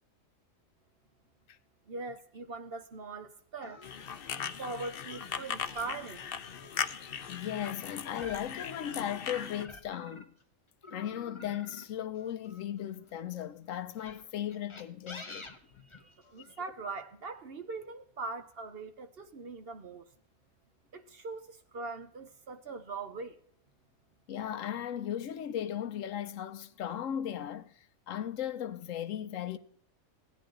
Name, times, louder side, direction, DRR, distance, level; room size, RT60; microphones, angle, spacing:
voice 1, 1.9-6.3 15.8-20.0 20.9-23.4, right 3 dB, 50° right, 0.9 m, -41 dB
sound 1, 3.6-10.4 10.8-13.2 13.9-16.5, left 3 dB, 25° left, 0.9 m, -50 dB
sound 2, 3.8-9.7, left 8 dB, 55° left, 0.7 m, -39 dB
voice 2, 7.3-10.3 10.9-15.5 16.5-16.6 24.3-29.6, left 10 dB, 75° left, 1.0 m, -37 dB
16.0 x 10.0 x 3.8 m
omnidirectional pair, 1.4 m